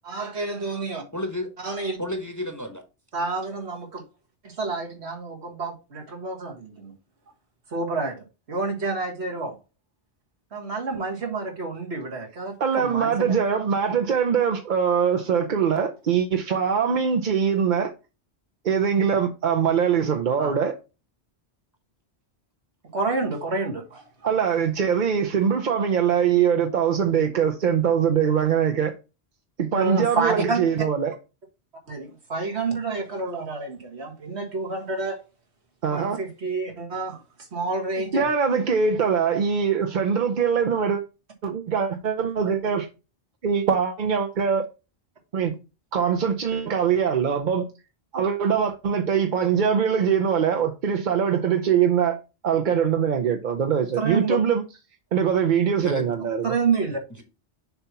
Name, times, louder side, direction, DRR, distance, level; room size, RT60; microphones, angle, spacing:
voice 1, 0.0-1.0 1.6-2.0 3.1-4.0 4.4-6.9 7.7-8.2 8.5-9.5 10.5-13.3 20.4-20.5 22.9-24.3 29.7-30.6 31.9-35.2 35.9-37.2 37.5-38.3 54.0-54.4 56.4-57.0, right 3 dB, 70° right, 1.9 m, -28 dB
voice 2, 1.1-1.5 2.0-2.8 55.8-56.1, left 1 dB, 15° left, 0.9 m, -31 dB
voice 3, 12.6-17.9 18.6-20.8 24.2-28.9 29.6-31.1 35.8-36.2 38.1-41.0 41.4-42.9 43.4-44.6 45.3-45.6 45.9-47.7 48.1-54.6 55.1-56.5, right 7 dB, 50° right, 0.7 m, -22 dB
6.8 x 2.9 x 5.8 m
omnidirectional pair, 1.1 m